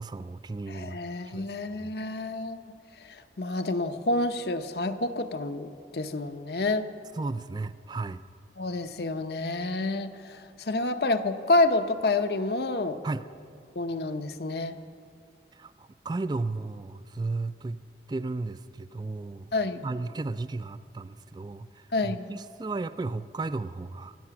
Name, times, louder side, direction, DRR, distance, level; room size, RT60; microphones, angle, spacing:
voice 1, 0.0-1.0 1.2-1.5 1.8-1.9 7.2-8.2 13.0-13.2 15.5-17.8 18.1-19.5 19.8-24.2, right 3 dB, 25° right, 15 dB, 0.3 m, -34 dB
voice 2, 0.7-2.7 3.0-6.9 8.6-13.0 13.8-14.8 19.5-19.9 21.9-22.3, left 2 dB, 65° left, 8 dB, 0.7 m, -28 dB
23.0 x 8.5 x 5.9 m, 2.3 s
head